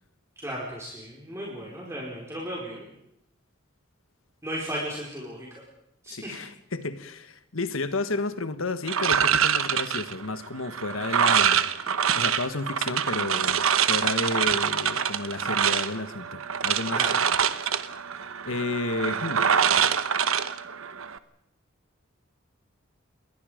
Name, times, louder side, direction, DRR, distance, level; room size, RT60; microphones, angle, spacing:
voice 1, 0.4-2.8 4.4-5.5 6.0-6.3 16.9-17.2, equal, 15° right, -4 dB, 4.9 m, -35 dB
voice 2, 6.1-11.6 12.1-13.6 13.9-17.1 18.4-19.5, left 2 dB, 80° left, 11 dB, 1.5 m, -31 dB
sound 1, 8.9-21.2, right 8 dB, 85° right, 1.0 m, -25 dB
27.5 x 22.0 x 5.2 m, 0.79 s
head